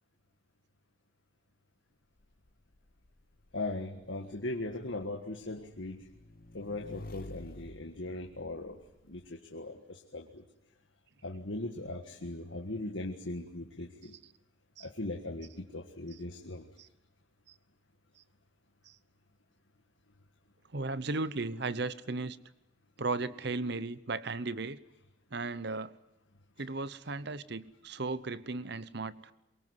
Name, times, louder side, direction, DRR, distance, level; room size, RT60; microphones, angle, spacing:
Motorcycle / Engine, 2.2-9.3, left 2 dB, 45° left, 1.0 m, -51 dB
voice 1, 3.5-6.1 6.5-8.8 9.1-10.4 11.2-14.1 14.8-16.7, left 2 dB, 65° left, 3 dB, 1.7 m, -39 dB
voice 2, 20.7-22.4 23.0-24.8 25.3-25.9 26.6-29.3, right 3 dB, 55° right, 16 dB, 0.9 m, -36 dB
24.0 x 22.0 x 9.7 m, 0.91 s
head